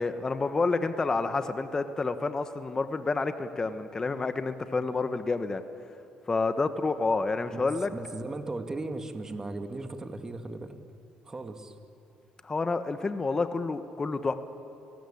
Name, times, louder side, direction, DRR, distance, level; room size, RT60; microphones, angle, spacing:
voice 1, 0.0-5.6 6.3-7.9 12.4-14.3, left 3 dB, 25° left, 10 dB, 1.3 m, -29 dB
voice 2, 7.5-10.8 11.2-11.7, right 2 dB, 25° right, 7 dB, 2.1 m, -37 dB
29.5 x 18.5 x 8.7 m, 2.8 s
supercardioid pair, 85°, 2 cm